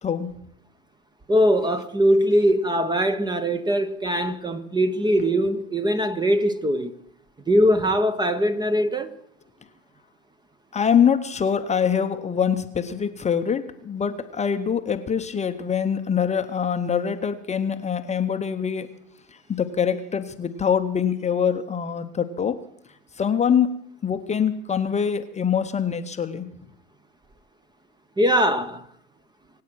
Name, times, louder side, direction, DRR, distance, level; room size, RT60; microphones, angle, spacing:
voice 1, 0.0-0.3 10.7-18.9 19.5-22.6 23.2-26.5, left 7 dB, 15° left, 0.9 m, -24 dB
voice 2, 1.3-6.9 7.5-9.1 28.2-28.8, equal, 10° right, 0.9 m, -21 dB
25.0 x 8.5 x 6.2 m
hypercardioid pair, 110°, 39 cm